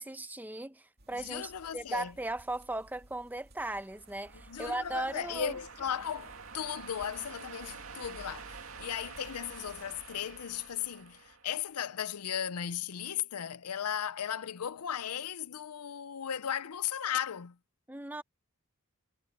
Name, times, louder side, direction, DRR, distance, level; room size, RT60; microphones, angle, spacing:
voice 1, 0.0-5.6 17.9-18.2, right 2 dB, 10° right, 0.8 m, -37 dB
sound 1, 1.0-10.1, right 1 dB, 45° right, 2.5 m, -59 dB
voice 2, 1.2-2.1 4.5-17.6, left 9 dB, 90° left, 0.6 m, -36 dB
sound 2, 3.8-12.0, right 5 dB, 65° right, 2.7 m, -49 dB
head